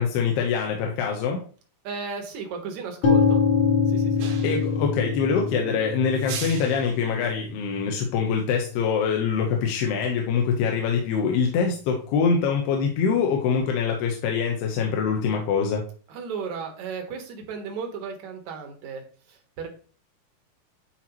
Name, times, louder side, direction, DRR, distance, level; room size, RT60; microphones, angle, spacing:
voice 1, 0.0-1.4 4.2-15.9, left 6 dB, 80° left, 1 dB, 2.9 m, -24 dB
voice 2, 1.8-3.4 3.9-4.3 16.1-19.0 19.3-19.7, right 5 dB, 60° right, 3 dB, 2.2 m, -35 dB
sound 1, 3.0-10.9, left 5 dB, 55° left, 1.8 m, -26 dB
sound 2, 4.2-4.8 6.1-7.0, right 7 dB, 75° right, 3.1 m, -37 dB
10.0 x 4.4 x 3.0 m, 0.41 s
omnidirectional pair, 4.7 m